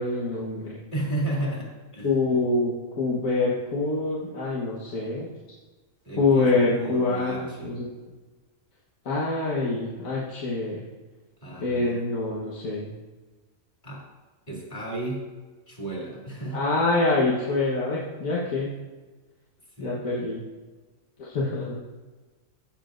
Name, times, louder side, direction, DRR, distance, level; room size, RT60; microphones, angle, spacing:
voice 1, 0.0-0.8 2.0-5.3 6.2-7.9 9.1-10.8 11.6-12.9 16.5-18.7 19.8-20.4 21.2-21.8, left 3 dB, 75° left, -6 dB, 1.7 m, -25 dB
voice 2, 0.9-2.2 6.0-7.8 11.4-12.0 13.8-14.1 14.5-15.3 15.7-16.6 19.8-20.1, right 1 dB, 35° left, -4 dB, 2.7 m, -33 dB
15.0 x 7.0 x 2.6 m, 1.3 s
omnidirectional pair, 1.4 m